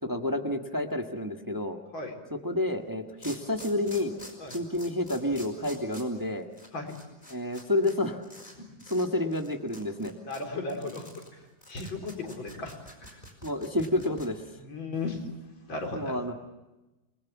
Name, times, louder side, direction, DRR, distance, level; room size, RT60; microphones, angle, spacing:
voice 1, 0.0-1.8 2.3-4.1 4.5-6.5 7.3-8.2 8.9-10.1 13.4-14.4 15.9-16.3, left 1 dB, 10° right, 4 dB, 1.4 m, -29 dB
sound 1, 2.7-2.8 3.2-8.0 8.2-8.5 8.8-9.1 9.3-14.3, left 1 dB, 20° left, 4.8 m, -47 dB
voice 2, 10.3-11.1 11.7-12.7 13.1-13.2 14.6-15.2 15.7-16.2, left 3 dB, 90° left, 2 dB, 4.7 m, -35 dB
29.0 x 21.0 x 7.3 m, 1.1 s
omnidirectional pair, 2.1 m